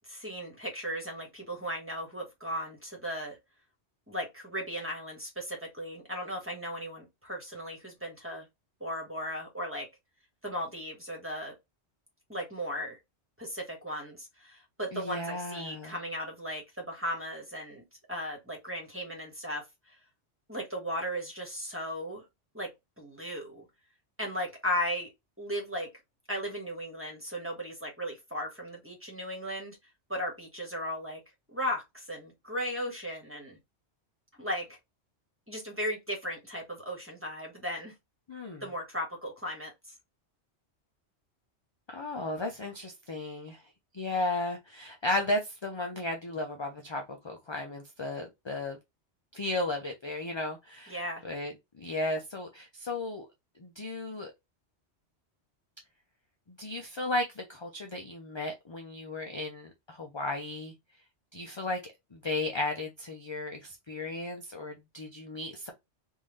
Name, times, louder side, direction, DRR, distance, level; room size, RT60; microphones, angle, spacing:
voice 1, 0.1-3.4 4.1-8.5 8.8-9.9 10.4-11.5 12.3-13.0 13.4-17.8 18.1-19.6 20.5-22.2 22.5-22.7 23.0-23.6 24.2-25.1 25.4-25.9 26.3-29.8 30.1-31.2 31.5-33.6 34.4-34.8 35.5-37.9 38.6-39.7 50.9-51.2, equal, 10° right, 1.3 m, -36 dB
voice 2, 14.9-15.9 38.3-38.6 41.9-43.6 43.9-48.8 49.3-53.3 53.6-54.3 56.6-60.7 61.3-61.8 62.1-65.7, left 2 dB, 35° left, 0.4 m, -35 dB
3.6 x 2.6 x 3.1 m
omnidirectional pair, 1.2 m